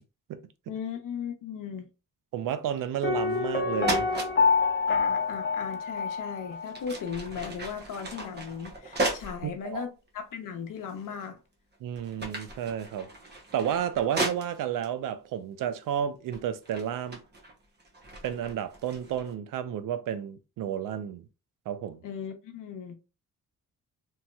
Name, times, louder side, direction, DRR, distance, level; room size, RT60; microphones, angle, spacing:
voice 1, 0.7-1.9 4.9-11.4 22.0-23.0, left 7 dB, 70° left, 0.8 m, -37 dB
voice 2, 2.3-4.1 9.4-9.9 11.8-13.1 13.5-17.2 18.2-21.2 21.7-22.0, right 9 dB, 75° right, 0.5 m, -31 dB
Piano, 3.0-6.8 7.1-7.2, left 5 dB, 30° left, 0.6 m, -27 dB
sound 1, 3.2-3.5 3.8-4.3 6.0-6.1 6.6-9.4 10.1-10.2 10.9-11.4 11.7-14.9 15.7-16.0 16.3-19.3, right 2 dB, 30° right, 0.8 m, -36 dB
3.0 x 2.7 x 2.2 m
cardioid pair, 100°, 33 cm